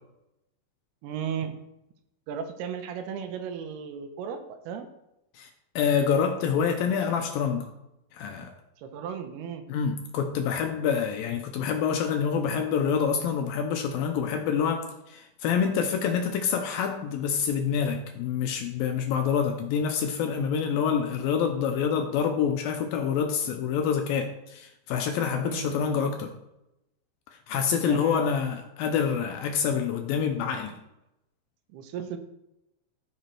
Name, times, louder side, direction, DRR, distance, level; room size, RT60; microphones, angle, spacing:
voice 1, 1.0-1.5 2.3-4.9 8.8-9.6 25.4-25.8 27.8-28.2 31.7-32.2, right 7 dB, 80° right, 8 dB, 2.7 m, -35 dB
voice 2, 5.8-7.7 8.1-8.5 9.7-26.3 27.5-30.8, left 7 dB, 80° left, 5 dB, 2.2 m, -27 dB
14.5 x 5.2 x 4.5 m, 0.90 s
omnidirectional pair, 4.7 m